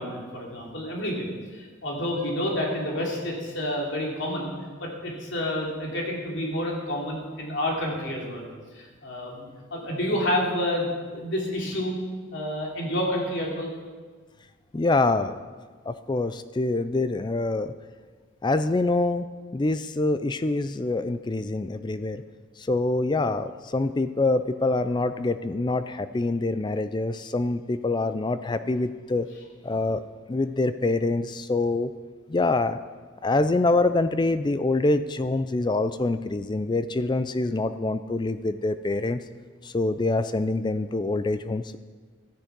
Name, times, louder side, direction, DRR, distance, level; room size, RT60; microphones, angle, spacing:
voice 1, 0.0-4.5 4.8-8.5 8.7-11.9 12.3-13.7, left 1 dB, 60° left, -2 dB, 3.1 m, -29 dB
voice 2, 14.7-15.4 15.9-17.7 18.4-19.3 19.5-22.2 22.6-29.3 29.6-30.0 30.3-31.9 32.3-32.8 33.2-39.2 39.6-41.8, left 2 dB, 20° left, 12 dB, 0.4 m, -25 dB
13.5 x 10.0 x 6.1 m, 1.5 s
head